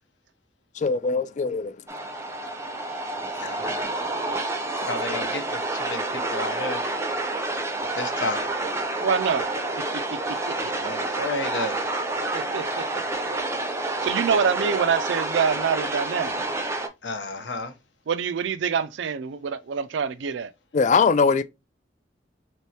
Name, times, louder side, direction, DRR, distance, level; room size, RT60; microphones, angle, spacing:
voice 1, 0.8-1.8 3.4-3.9 20.7-21.4, left 5 dB, 40° left, 0.3 m, -22 dB
sound 1, 1.9-16.9, right 2 dB, 15° right, 0.5 m, -29 dB
voice 2, 3.2-3.7 4.8-6.8 7.9-8.6 10.6-11.9 17.0-17.7, left 2 dB, 80° left, 0.8 m, -32 dB
voice 3, 9.0-9.5 9.9-10.6 12.3-12.9 14.0-16.4 18.1-20.5, right 6 dB, 80° right, 0.4 m, -26 dB
3.4 x 3.1 x 2.8 m
head